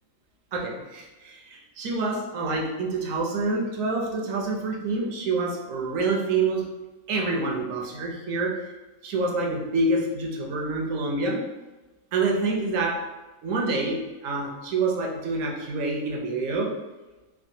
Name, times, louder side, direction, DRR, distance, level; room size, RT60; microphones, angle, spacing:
voice 1, 0.5-6.7 7.1-8.7 9.0-11.4 12.1-13.1 13.4-16.8, right 3 dB, 70° right, 0 dB, 1.0 m, -27 dB
3.4 x 2.1 x 2.6 m, 1.1 s
omnidirectional pair, 1.5 m